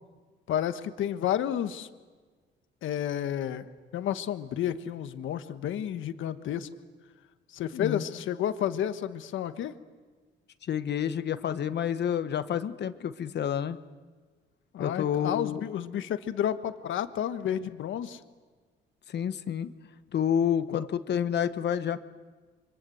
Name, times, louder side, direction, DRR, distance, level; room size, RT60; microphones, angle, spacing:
voice 1, 0.5-1.9 2.8-3.7 3.9-6.7 7.5-9.7 14.7-18.2 20.7-20.9, left 10 dB, 80° left, 10 dB, 1.4 m, -31 dB
voice 2, 7.7-8.0 10.7-13.8 14.8-15.6 19.1-19.7 20.1-22.0, left 9 dB, 60° left, 11 dB, 1.1 m, -29 dB
28.0 x 24.5 x 7.9 m, 1.4 s
cardioid pair, 90°, 20 cm